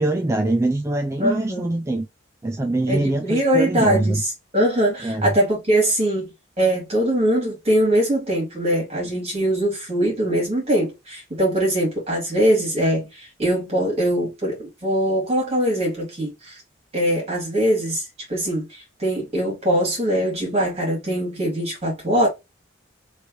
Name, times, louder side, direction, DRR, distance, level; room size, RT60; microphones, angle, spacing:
voice 1, 0.0-2.1 2.4-4.2 5.0-5.2, right 2 dB, 15° right, 0.3 m, -23 dB
voice 2, 1.2-1.7 2.9-6.3 6.6-16.6 16.9-22.3, right 1 dB, 30° right, 2.2 m, -22 dB
3.3 x 3.2 x 3.0 m
head